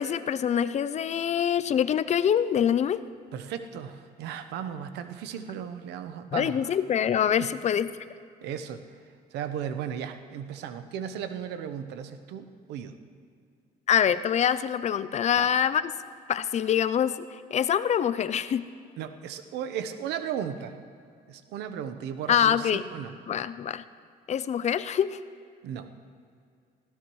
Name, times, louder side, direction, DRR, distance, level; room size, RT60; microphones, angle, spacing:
voice 1, 0.0-3.0 6.3-7.9 13.9-15.8 16.3-18.6 22.3-22.8 23.3-23.8 24.3-25.2, left 9 dB, 40° left, 14 dB, 0.5 m, -25 dB
voice 2, 3.3-6.7 7.4-7.5 8.4-8.8 9.3-12.9 15.4-15.5 19.0-20.8 21.3-23.1 25.6-25.9, right 8 dB, 85° right, 9 dB, 0.9 m, -36 dB
20.0 x 16.0 x 3.2 m, 2.3 s
cardioid pair, 110°, 17 cm